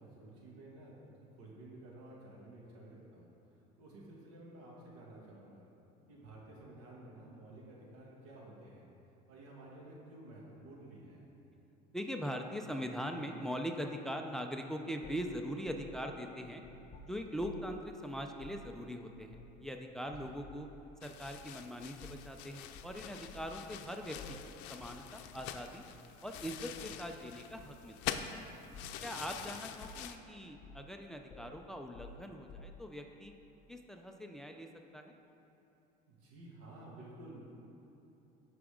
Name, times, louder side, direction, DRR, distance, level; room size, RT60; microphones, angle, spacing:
voice 1, 0.0-3.3 3.8-5.7 6.1-8.9 9.3-11.3 20.0-20.3 23.3-23.6 28.8-29.2 36.1-37.4, right 1 dB, 85° right, -3 dB, 2.4 m, -53 dB
voice 2, 11.9-16.6 17.1-20.7 21.0-24.4 24.7-25.8 26.2-28.3 29.0-33.3 33.7-35.2, equal, 5° left, 4 dB, 0.5 m, -41 dB
sound 1, 15.0-17.8 18.3-18.7 19.3-19.7 20.1-20.7 21.2-21.4 22.0-22.3 22.7-23.5 24.1-24.5 24.8-25.0 25.3-25.6 26.3-27.0 27.6-28.3 28.7-29.0 29.3-29.5 29.8-30.2 30.6-30.9 31.3-33.0, left 2 dB, 45° left, 1.8 m, -53 dB
sound 2, 21.0-30.2, left 10 dB, 80° left, 0.6 m, -45 dB
16.0 x 6.0 x 3.8 m, 3.0 s
cardioid pair, 130°, 18 cm